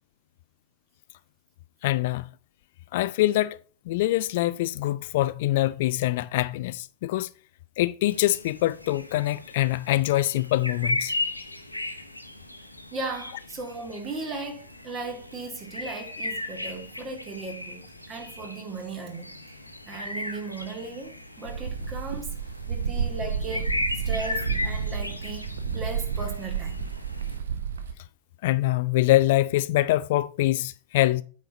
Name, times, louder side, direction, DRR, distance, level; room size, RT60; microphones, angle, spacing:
voice 1, 1.8-2.3 2.9-3.6 3.9-7.3 7.8-11.1 28.4-31.2, left 16 dB, 50° left, 0.3 m, -24 dB
sound 1, 8.1-27.4, left 2 dB, 85° left, 1.0 m, -36 dB
voice 2, 12.9-19.3 19.9-22.3 22.7-23.8 24.1-26.8, right 3 dB, 25° right, 2.3 m, -37 dB
sound 2, 21.4-27.9, right 6 dB, 70° right, 0.9 m, -31 dB
8.9 x 4.5 x 5.4 m
figure-of-eight pair, 90°, 0 cm